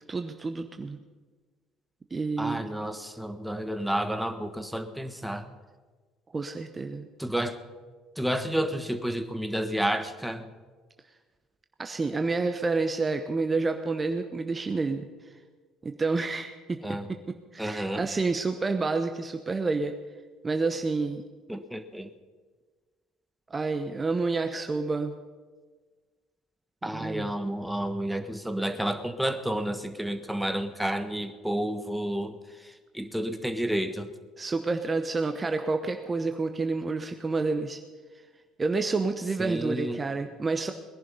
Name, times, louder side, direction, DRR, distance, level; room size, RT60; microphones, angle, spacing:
voice 1, 0.1-1.0 2.1-2.7 6.3-7.1 11.8-15.3 15.8-19.9 20.4-21.2 23.5-25.2 26.8-27.3 34.4-37.8 38.6-40.7, right 3 dB, 25° right, 7 dB, 0.9 m, -29 dB
voice 2, 2.4-5.5 7.2-7.6 8.2-10.4 16.8-17.0 17.6-18.0 21.5-22.1 26.8-32.4 32.9-34.1 39.4-40.0, right 1 dB, ahead, 8 dB, 1.3 m, -30 dB
20.5 x 11.0 x 5.4 m, 1.4 s
hypercardioid pair, 60°, 0 cm